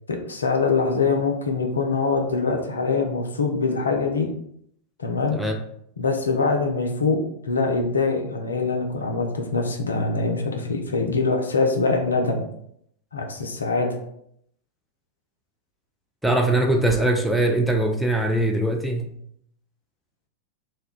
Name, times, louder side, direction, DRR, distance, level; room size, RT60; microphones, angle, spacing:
voice 1, 0.1-4.3 5.0-5.4 6.0-12.4 13.1-14.0, left 4 dB, 75° left, 3 dB, 0.4 m, -23 dB
voice 2, 16.2-19.1, right 1 dB, ahead, 2 dB, 0.4 m, -21 dB
2.2 x 2.1 x 3.6 m, 0.71 s
figure-of-eight pair, 90°, 0 cm